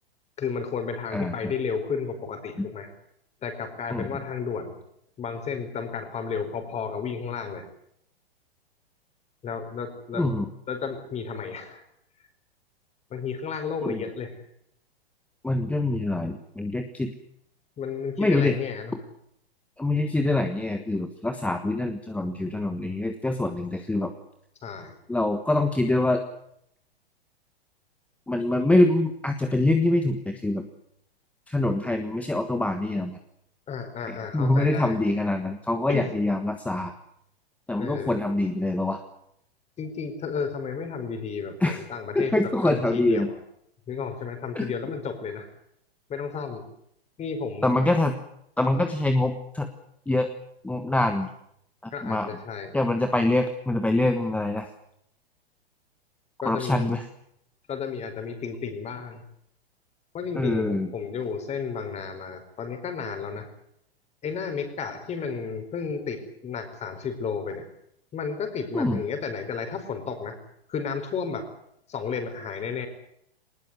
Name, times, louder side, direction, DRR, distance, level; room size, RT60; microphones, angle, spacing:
voice 1, 0.4-2.9 3.4-4.7 5.2-7.6 9.4-10.2 10.7-11.8 13.1-14.3 17.8-19.0 24.6-24.9 33.7-35.0 35.9-36.1 37.8-38.1 39.8-43.3 43.9-45.5 46.1-46.6 47.2-47.8 51.9-52.8 56.4-57.0 57.7-59.2 60.1-63.5 64.2-67.7 68.1-70.4 70.7-71.5 71.9-72.9, left 5 dB, 20° left, 7 dB, 4.8 m, -32 dB
voice 2, 1.1-1.5 2.6-2.7 3.9-4.2 10.1-10.5 13.8-14.0 15.4-17.1 18.2-18.6 19.8-24.1 25.1-26.2 28.3-30.6 31.5-33.2 34.1-36.9 37.7-39.0 41.6-41.8 42.1-43.3 44.5-44.7 47.6-48.1 48.6-49.7 50.1-50.3 50.6-51.3 51.8-52.3 52.7-54.7 56.4-57.0 60.3-60.9 68.7-69.0, left 2 dB, 5° left, 6 dB, 1.3 m, -25 dB
20.5 x 20.0 x 9.7 m, 0.72 s
hypercardioid pair, 130°, 31 cm